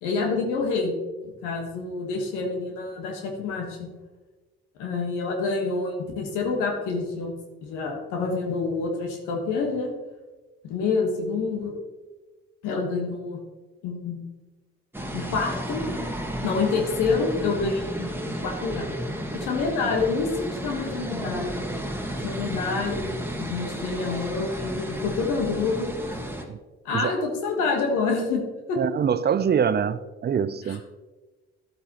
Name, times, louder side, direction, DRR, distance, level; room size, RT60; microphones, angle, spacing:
voice 1, 0.0-0.9 1.4-3.9 4.8-7.4 7.6-9.9 10.6-11.7 12.6-13.4 13.8-14.3 15.1-15.8 16.4-18.9 19.3-21.6 22.2-26.2 26.8-28.8 30.6-30.9, left 4 dB, 75° left, 2 dB, 1.4 m, -27 dB
sound 1, 14.9-26.4, right 1 dB, 5° right, 1.4 m, -33 dB
voice 2, 28.7-30.8, right 7 dB, 35° right, 16 dB, 0.5 m, -24 dB
11.5 x 8.1 x 3.0 m, 1.2 s
hypercardioid pair, 50°, 31 cm